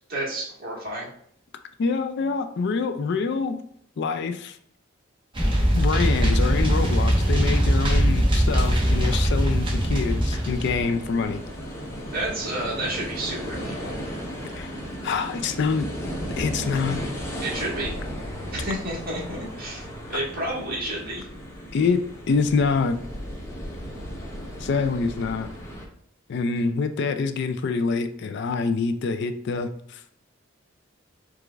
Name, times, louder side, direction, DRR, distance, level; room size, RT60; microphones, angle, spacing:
voice 1, 0.1-1.1 12.1-13.9 17.4-17.9 18.5-19.8 20.1-21.2, right 1 dB, 50° right, -5 dB, 1.7 m, -30 dB
voice 2, 1.8-3.6 4.0-4.6 5.7-11.4 14.5-14.7 15.0-15.9 16.4-17.0 20.1-20.2 21.7-22.0 22.3-23.0 24.6-25.5 26.3-30.0, left 4 dB, 60° left, 9 dB, 0.4 m, -25 dB
sound 1, 5.3-10.8, equal, 25° right, 0.9 m, -21 dB
sound 2, 8.5-25.8, equal, 15° left, 0.8 m, -35 dB
5.0 x 2.4 x 3.4 m, 0.67 s
head